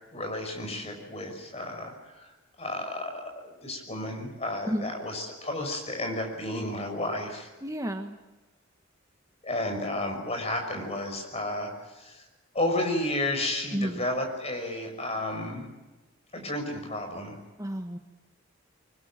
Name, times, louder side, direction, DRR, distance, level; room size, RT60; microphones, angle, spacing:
voice 1, 0.1-2.3 2.6-3.3 3.6-7.5 9.4-12.3 12.5-15.7 16.3-17.4, left 1 dB, 30° left, 4 dB, 5.9 m, -32 dB
voice 2, 7.6-8.2 13.7-14.0 17.6-18.0, equal, 15° right, 5 dB, 1.2 m, -31 dB
25.0 x 21.0 x 8.8 m, 1.1 s
head